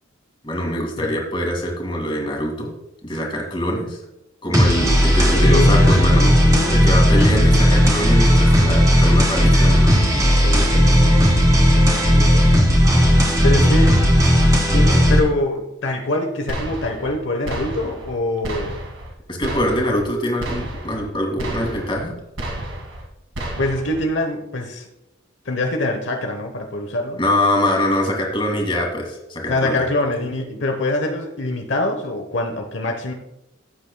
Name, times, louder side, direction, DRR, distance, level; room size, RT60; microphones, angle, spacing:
voice 1, 0.4-2.7 3.0-4.0 4.4-6.3 6.7-9.9 13.6-13.7 19.3-22.2 27.2-29.8, left 1 dB, 25° left, 0 dB, 2.2 m, -23 dB
sound 1, 4.5-15.2, equal, 15° right, 1.9 m, -14 dB
voice 2, 5.3-7.9 10.4-12.8 13.4-14.0 14.7-18.8 23.6-24.8 25.4-27.2 29.5-33.1, left 1 dB, 65° left, 3 dB, 1.0 m, -25 dB
sound 2, 16.5-17.2 17.5-18.2 18.4-19.1 19.4-20.1 20.4-21.1 21.4-22.1 22.4-23.1 23.4-24.0, right 1 dB, 80° right, 2.0 m, -31 dB
16.0 x 8.3 x 2.3 m, 0.89 s
head